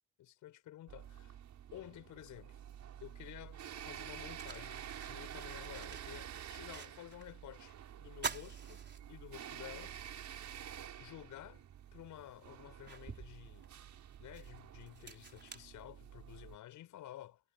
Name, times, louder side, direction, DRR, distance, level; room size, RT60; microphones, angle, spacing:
voice 1, 0.2-1.1 1.7-2.6 3.0-10.0 11.0-11.6 11.9-13.7 14.2-17.4, left 13 dB, 85° left, 6.8 m, -52 dB
sound 1, 0.9-16.6, right 10 dB, 65° right, 6.1 m, -49 dB
sound 2, 4.0-7.3 7.6-7.7 8.1-9.6 10.1-10.2 11.6-11.7 12.2-16.4, right 5 dB, 35° right, 3.9 m, -48 dB
cardioid pair, 90°, 30 cm